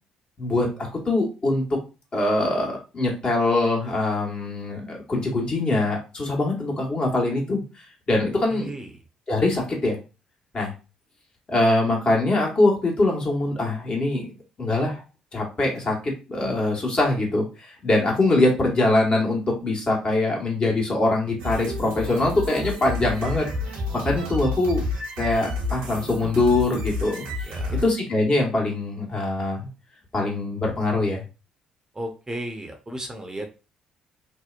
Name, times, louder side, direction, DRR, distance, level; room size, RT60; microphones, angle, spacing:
voice 1, 0.4-1.6 2.1-8.7 9.3-10.0 10.5-10.7 11.5-14.3 14.6-15.0 15.3-23.4 23.9-24.8 25.2-27.2 27.8-29.6 30.1-31.2, left 2 dB, 40° left, -1 dB, 1.2 m, -23 dB
voice 2, 8.5-8.9 27.4-27.8 31.9-33.5, right 1 dB, 25° right, 4 dB, 0.6 m, -34 dB
sound 1, 21.4-27.9, left 2 dB, 80° right, 0.7 m, -30 dB
2.7 x 2.0 x 2.4 m, 0.31 s
hypercardioid pair, 55°, 3 cm